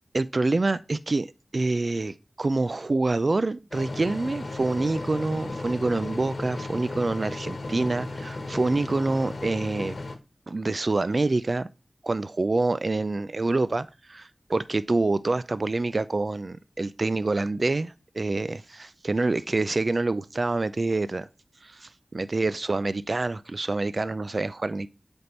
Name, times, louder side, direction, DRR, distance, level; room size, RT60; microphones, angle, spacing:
voice 1, 0.1-1.3 1.5-10.0 10.5-11.7 12.0-21.3 21.6-24.9, right 2 dB, 60° right, 0.3 m, -26 dB
sound 1, 3.7-10.1, left 2 dB, 85° left, 1.1 m, -35 dB
7.9 x 3.5 x 4.3 m
wide cardioid pair, 60°, 0 cm